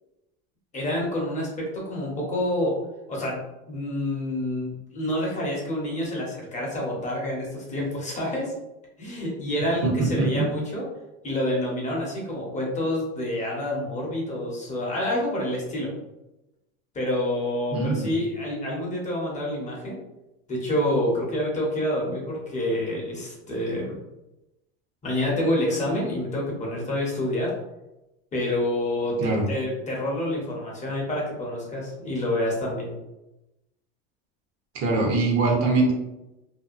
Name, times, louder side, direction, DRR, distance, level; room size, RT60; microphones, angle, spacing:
voice 1, 0.7-2.7 3.1-3.4 3.7-8.5 9.0-10.8 11.2-15.9 16.9-20.0 20.5-24.0 25.0-27.5 28.3-29.2 29.5-32.9, left 1 dB, 25° left, -3 dB, 0.8 m, -28 dB
voice 2, 9.8-10.5 17.7-18.1 29.2-29.5 34.7-35.9, right 3 dB, 55° right, -1 dB, 0.9 m, -23 dB
2.7 x 2.2 x 2.5 m, 0.94 s
supercardioid pair, 130°, 30 cm